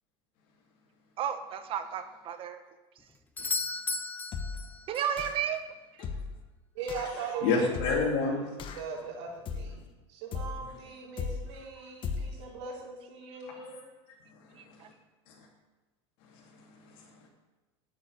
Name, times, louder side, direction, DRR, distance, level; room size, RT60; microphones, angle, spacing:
voice 1, 1.2-2.6 4.9-5.6 14.5-14.9, right 9 dB, 40° right, 9 dB, 1.1 m, -33 dB
Doorbell, 3.4-5.2 9.3-9.4, left 3 dB, 10° left, 0.7 m, -35 dB
sound 1, 4.3-4.7 5.2-5.6 6.0-6.4 6.9-7.2 7.7-8.2 8.6-9.0 9.5-9.9 10.3-10.7 11.2-11.6 12.0-12.5, left 5 dB, 35° left, 1.3 m, -37 dB
voice 2, 6.8-7.7 8.2-8.3 8.7-9.8 10.1-13.8, right 4 dB, 70° right, -6 dB, 3.7 m, -40 dB
voice 3, 7.4-8.7 10.6-10.7 11.8-11.9 13.4-13.8 14.3-14.9 15.3-15.5 16.2-17.3, left 4 dB, 60° left, -4 dB, 3.2 m, -32 dB
9.4 x 8.9 x 9.8 m, 1.2 s
supercardioid pair, 135°, 15 cm